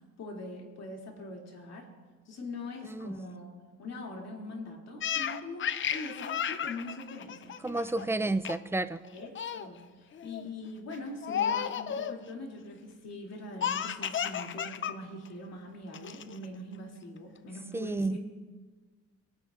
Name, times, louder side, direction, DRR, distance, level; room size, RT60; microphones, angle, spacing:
voice 1, 0.2-1.9 2.3-3.5 3.8-8.3 9.1-18.2, left 2 dB, 60° left, 0 dB, 2.7 m, -42 dB
Laughter, 5.0-8.0 8.4-8.7 9.0-9.7 10.1-10.5 11.2-12.2 13.6-14.9 15.2-15.3 15.9-16.4, left 8 dB, 40° left, 0.5 m, -33 dB
voice 2, 7.6-9.0 17.7-18.2, right 2 dB, 10° right, 12 dB, 0.4 m, -31 dB
21.0 x 9.6 x 2.5 m, 1.4 s
cardioid pair, 90°, 30 cm